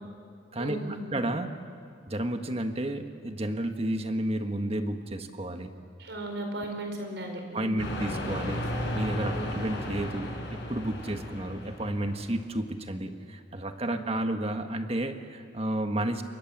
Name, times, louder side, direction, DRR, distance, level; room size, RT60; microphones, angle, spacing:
voice 1, 0.6-1.1 6.0-7.9 9.3-9.4 13.8-14.0, right 1 dB, 75° right, 4 dB, 4.8 m, -36 dB
voice 2, 1.1-1.5 2.1-5.7 7.5-8.7 8.9-16.2, right 1 dB, 35° right, 6 dB, 1.5 m, -31 dB
sound 1, 7.8-12.3, left 1 dB, 70° left, 5.1 m, -34 dB
27.5 x 23.5 x 7.4 m, 2.2 s
head